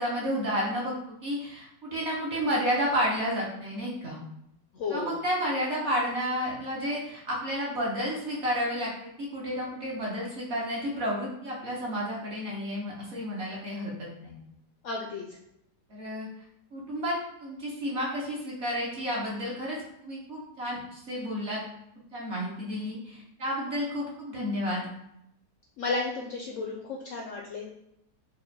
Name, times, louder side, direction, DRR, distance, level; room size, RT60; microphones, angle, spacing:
voice 1, 0.0-4.2 4.9-14.4 15.9-16.3 16.7-21.6 22.1-24.9, equal, 55° right, -4 dB, 0.9 m, -31 dB
voice 2, 4.7-5.2 14.8-15.2 25.8-27.7, left 4 dB, 80° left, -1 dB, 0.7 m, -33 dB
4.3 x 2.3 x 4.0 m, 0.80 s
omnidirectional pair, 1.9 m